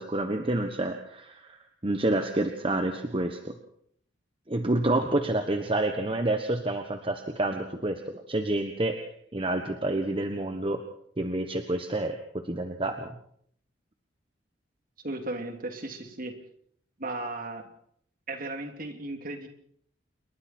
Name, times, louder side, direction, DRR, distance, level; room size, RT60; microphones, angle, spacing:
voice 1, 0.0-1.6 1.8-3.5 4.5-9.0 9.3-10.8 11.2-12.2 12.4-13.1, right 2 dB, 30° right, 5 dB, 1.3 m, -28 dB
voice 2, 15.0-16.4 17.0-17.6 18.3-19.5, right 2 dB, 50° right, 5 dB, 3.1 m, -35 dB
28.0 x 22.5 x 4.5 m, 0.66 s
head